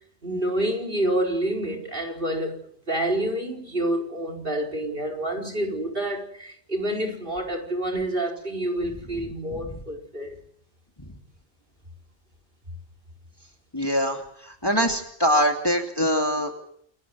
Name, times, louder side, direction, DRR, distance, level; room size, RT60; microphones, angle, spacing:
voice 1, 0.2-2.6 2.9-10.4, right 1 dB, 50° right, 4.9 m, -28 dB
voice 2, 13.7-16.5, equal, 20° left, 2.7 m, -24 dB
28.5 x 13.5 x 9.5 m
omnidirectional pair, 1.2 m